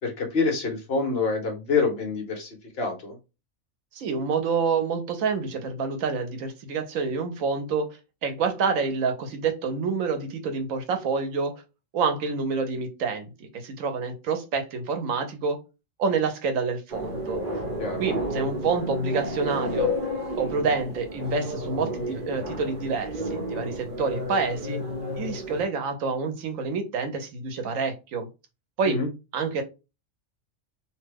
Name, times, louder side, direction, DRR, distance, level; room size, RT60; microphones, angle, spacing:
voice 1, 0.0-3.2 17.8-18.0 28.9-29.1, left 4 dB, 55° left, 2 dB, 1.1 m, -26 dB
voice 2, 3.9-7.9 8.2-11.5 11.9-15.6 16.0-17.4 18.0-19.9 20.4-24.8 25.1-28.3 28.8-29.0 29.3-29.6, right 5 dB, 80° right, 6 dB, 1.1 m, -27 dB
sound 1, 16.9-25.6, equal, 45° right, 0.9 m, -31 dB
2.8 x 2.2 x 3.3 m, 0.27 s
omnidirectional pair, 1.4 m